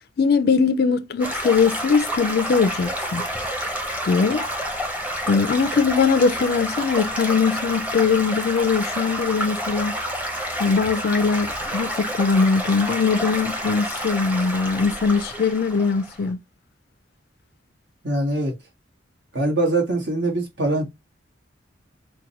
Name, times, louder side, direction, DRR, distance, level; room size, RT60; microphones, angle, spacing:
voice 1, 0.2-3.2 4.0-4.4 5.3-10.0 10.6-16.4, left 5 dB, 55° left, 0.4 m, -21 dB
Stream / Gurgling / Trickle dribble, 1.2-16.3, equal, 10° right, 0.7 m, -29 dB
voice 2, 18.0-18.5 19.3-20.8, right 2 dB, 70° right, 1.4 m, -22 dB
4.9 x 2.2 x 2.8 m
head